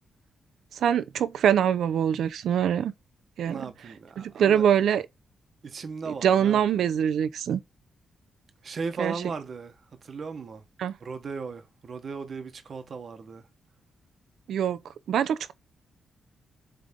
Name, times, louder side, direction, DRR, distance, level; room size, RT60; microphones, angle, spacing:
voice 1, 0.8-2.9 3.4-3.7 4.2-5.0 6.1-7.6 9.0-9.1 10.8-10.9 14.5-14.8 15.1-15.5, right 9 dB, 80° right, 0.7 m, -24 dB
voice 2, 3.4-4.6 5.6-6.6 8.6-9.7 10.0-10.6 11.0-13.4, right 5 dB, 40° right, 1.2 m, -36 dB
7.6 x 3.5 x 3.7 m
wide cardioid pair, 150°, 0 cm